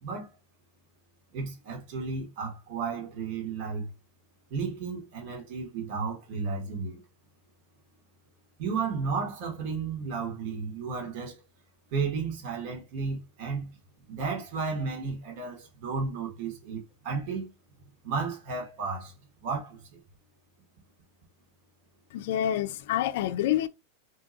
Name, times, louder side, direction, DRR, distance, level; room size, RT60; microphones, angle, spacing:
voice 1, 1.3-3.9 4.5-7.0 8.6-11.4 11.9-13.8 14.1-17.5 18.0-19.1 19.4-19.8, right 5 dB, 55° right, 1.3 m, -33 dB
voice 2, 22.1-23.7, left 11 dB, 70° left, 0.4 m, -27 dB
2.8 x 2.3 x 3.8 m
supercardioid pair, 130°, 0 cm